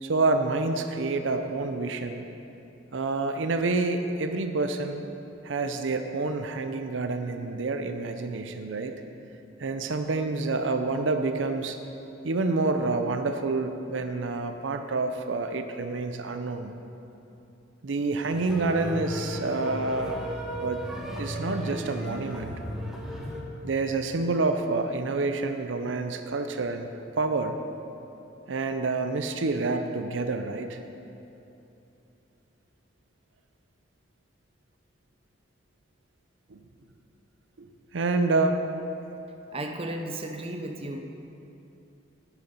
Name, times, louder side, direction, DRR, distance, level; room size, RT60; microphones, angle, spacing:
voice 1, 0.0-2.2 2.9-5.0 5.4-9.0 9.6-11.8 12.2-16.7 17.8-20.2 20.6-20.8 21.2-22.6 23.6-26.9 27.2-27.5 28.5-30.8 36.5-36.6 37.6-38.6, right 3 dB, 80° right, 7 dB, 0.6 m, -28 dB
sound 1, 18.3-23.4, equal, 5° right, 1.2 m, -35 dB
voice 2, 39.5-41.0, right 1 dB, 30° right, 4 dB, 0.7 m, -34 dB
11.0 x 8.3 x 5.3 m, 2.9 s
head